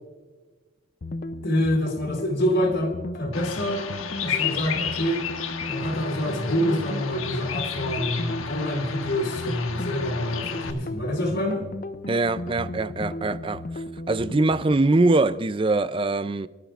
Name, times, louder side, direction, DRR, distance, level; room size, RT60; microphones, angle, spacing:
sound 1, 1.0-14.7, left 1 dB, 40° left, 0.6 m, -35 dB
voice 1, 1.4-3.8 4.2-5.3 5.7-11.6, equal, 55° left, 3.1 m, -26 dB
Bird vocalization bird call bird song, 3.3-10.7, left 8 dB, 80° left, 1.3 m, -32 dB
voice 2, 12.1-13.6 14.1-16.5, right 2 dB, 25° right, 0.4 m, -22 dB
25.0 x 13.0 x 2.5 m
head